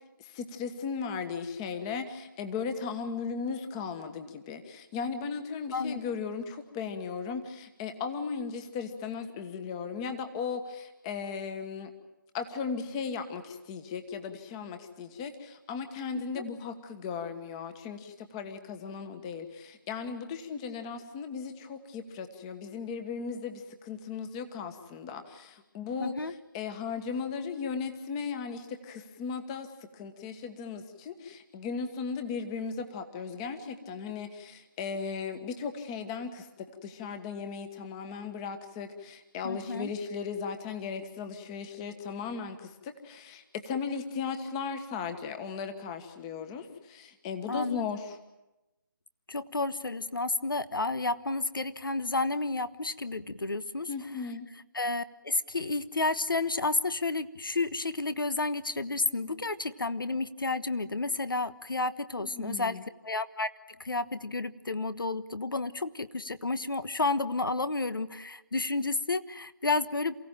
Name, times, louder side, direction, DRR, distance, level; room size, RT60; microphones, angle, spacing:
voice 1, 0.2-11.9 12.3-26.1 26.5-29.7 29.9-48.2 53.9-54.5 62.2-62.8, left 5 dB, 15° left, 9 dB, 1.4 m, -37 dB
voice 2, 26.0-26.3 39.4-39.9 47.5-47.8 49.3-53.9 54.7-63.5 63.8-70.2, left 3 dB, 85° left, 14 dB, 1.2 m, -31 dB
28.5 x 16.0 x 9.0 m, 1.0 s
figure-of-eight pair, 160°, 11 cm